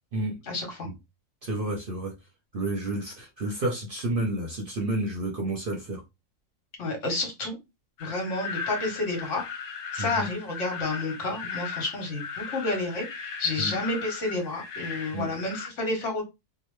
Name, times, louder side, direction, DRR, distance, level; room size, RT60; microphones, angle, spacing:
voice 1, 0.4-0.9 6.8-7.6 8.0-9.4 9.9-16.2, left 2 dB, 65° left, 3 dB, 1.4 m, -30 dB
voice 2, 1.4-2.1 2.5-6.0 10.0-10.3 13.6-13.8 15.1-15.3, right 1 dB, 55° right, 1 dB, 0.7 m, -30 dB
sound 1, 8.0-15.7, left 6 dB, 85° left, 1.1 m, -37 dB
2.9 x 2.1 x 3.1 m, 0.23 s
omnidirectional pair, 1.4 m